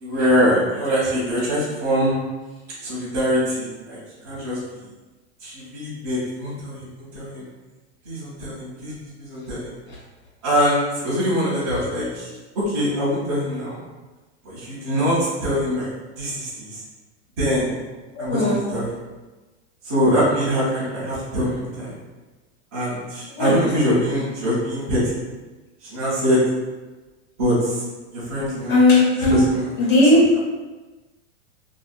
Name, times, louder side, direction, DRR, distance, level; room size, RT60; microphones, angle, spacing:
voice 1, 0.0-2.1 2.8-4.0 4.2-4.8 5.4-7.4 8.0-8.9 9.2-9.7 10.4-12.3 12.6-13.8 14.4-15.9 16.2-16.8 17.4-17.7 18.2-18.9 19.8-21.9 22.7-25.2 25.9-26.4 27.4-27.8 28.1-28.8 29.2-29.7, equal, 15° right, -12 dB, 0.3 m, -23 dB
voice 2, 18.1-18.6 23.3-23.5 28.7-29.4 29.8-30.2, left 2 dB, 45° left, -6 dB, 1.4 m, -16 dB
3.5 x 2.6 x 2.3 m, 1.2 s
supercardioid pair, 180°, 35 cm